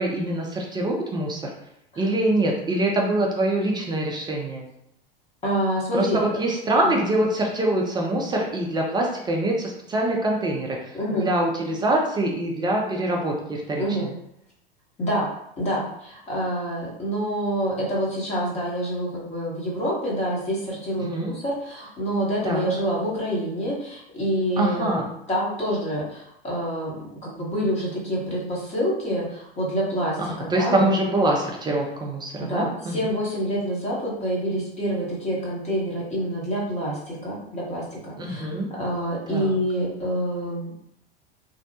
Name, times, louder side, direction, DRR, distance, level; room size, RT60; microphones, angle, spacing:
voice 1, 0.0-1.5 2.0-4.6 5.9-14.1 21.0-21.3 22.4-22.7 24.6-25.0 30.5-33.0 38.2-38.7 39.3-39.6, right 1 dB, 15° right, 0 dB, 0.4 m, -24 dB
voice 2, 5.4-6.2 10.9-11.3 13.8-14.1 15.0-15.3 15.6-25.0 25.3-26.9 27.2-30.9 32.4-38.5 38.8-40.7, equal, 20° left, -5 dB, 0.9 m, -27 dB
2.7 x 2.0 x 2.7 m, 0.78 s
hypercardioid pair, 90°, 30 cm